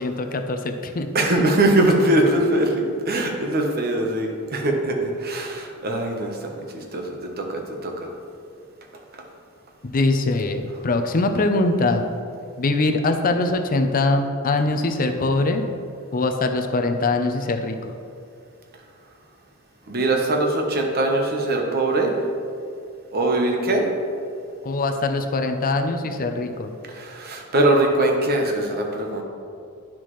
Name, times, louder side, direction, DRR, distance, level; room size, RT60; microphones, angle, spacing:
voice 1, 0.0-1.2 9.9-12.0 12.6-15.6 16.1-17.9 24.6-26.7, left 2 dB, 40° left, 6 dB, 0.6 m, -22 dB
voice 2, 1.1-7.9 19.9-22.1 23.1-23.8 26.9-29.2, right 1 dB, 45° right, 2 dB, 1.0 m, -22 dB
10.0 x 6.0 x 3.1 m, 2.4 s
head